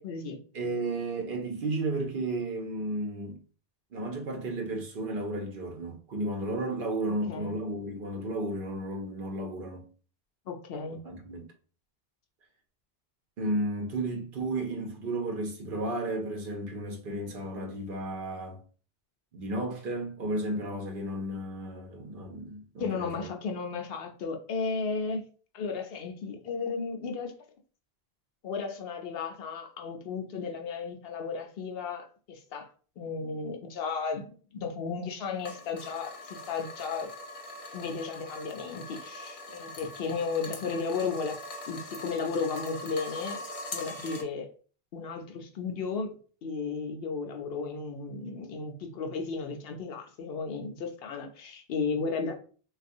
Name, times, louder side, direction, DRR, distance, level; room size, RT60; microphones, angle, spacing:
voice 1, 0.0-0.4 7.1-7.5 10.5-11.1 22.8-25.2 25.5-27.3 28.4-32.7 33.0-37.1 37.7-41.3 41.7-43.4 43.7-44.5 44.9-46.1 46.4-52.4, left 5 dB, 70° left, 0.8 m, -34 dB
voice 2, 0.5-3.4 3.9-9.9 11.0-11.4 13.4-18.6 19.3-23.3, right 1 dB, 65° right, 0.8 m, -33 dB
sound 1, 35.4-44.2, left 2 dB, 40° left, 0.5 m, -42 dB
3.5 x 2.4 x 2.6 m
omnidirectional pair, 1.0 m